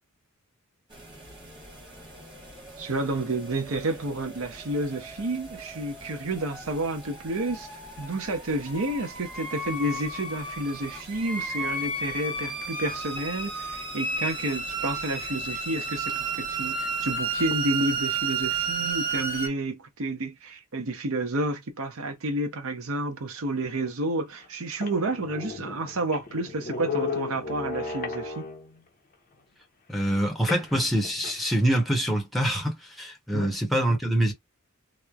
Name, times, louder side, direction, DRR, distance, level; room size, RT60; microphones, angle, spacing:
sound 1, 0.9-19.5, right 3 dB, 20° right, 1.2 m, -33 dB
voice 1, 2.8-28.5 33.3-33.5, right 2 dB, 65° right, 0.7 m, -30 dB
sound 2, 23.8-23.9 24.4-24.5 24.7-28.8 30.5-31.6, left 4 dB, 40° left, 0.6 m, -34 dB
voice 2, 29.9-34.3, right 1 dB, ahead, 0.7 m, -25 dB
3.0 x 2.1 x 2.3 m
head